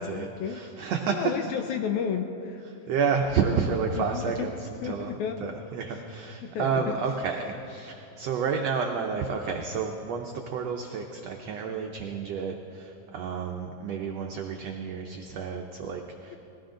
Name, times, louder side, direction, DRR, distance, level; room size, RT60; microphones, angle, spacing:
voice 1, 0.0-2.6 4.0-4.5 4.8-5.5 5.9-6.0 6.4-7.2, left 7 dB, 75° left, 5 dB, 1.8 m, -33 dB
voice 2, 0.5-1.2 2.9-4.5 4.8-5.1 5.4-16.3, right 5 dB, 85° right, 2 dB, 1.4 m, -30 dB
20.0 x 15.5 x 3.8 m, 2.9 s
omnidirectional pair, 3.9 m